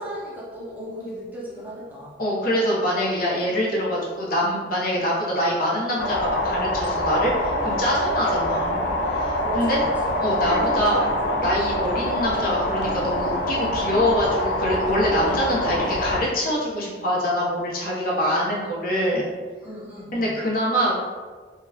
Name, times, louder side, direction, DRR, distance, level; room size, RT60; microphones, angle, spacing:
voice 1, 0.0-2.2 9.4-10.2 19.6-20.4, equal, 10° right, -6 dB, 0.6 m, -37 dB
voice 2, 2.2-9.8 10.2-19.3 20.1-21.1, equal, 55° left, -4 dB, 0.8 m, -24 dB
sound 1, 6.0-16.2, left 1 dB, 85° left, 0.5 m, -25 dB
3.7 x 2.3 x 2.8 m, 1.5 s
head